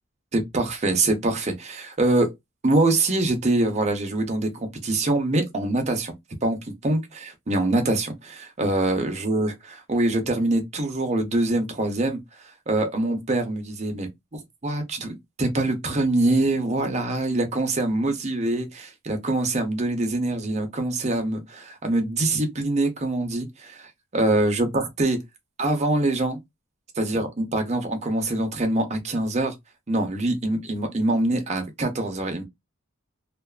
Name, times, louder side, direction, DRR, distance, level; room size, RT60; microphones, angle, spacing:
voice 1, 0.3-2.3 2.6-6.1 6.4-12.2 12.7-25.2 25.6-26.4 27.0-29.5 29.9-32.4, right 2 dB, 30° right, 0.7 m, -24 dB
2.5 x 2.4 x 2.3 m
head